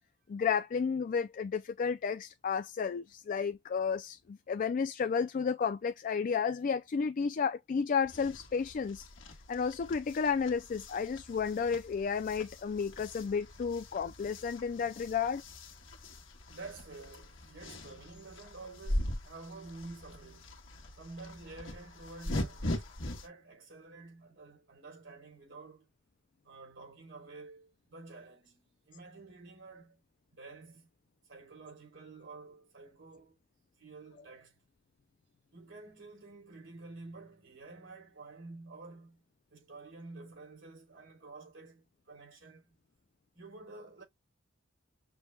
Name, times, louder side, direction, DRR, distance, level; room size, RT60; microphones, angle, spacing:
voice 1, 0.3-9.1 9.5-15.4, left 6 dB, 45° left, 0.3 m, -32 dB
sound 1, 8.0-23.3, left 1 dB, 70° left, 1.4 m, -41 dB
voice 2, 16.5-20.6 21.0-25.9 26.4-30.0 30.3-30.9 31.3-33.4 33.8-34.6 35.5-39.2 39.5-42.7 43.3-44.0, right 3 dB, 70° right, 3.4 m, -50 dB
6.1 x 2.3 x 3.3 m
head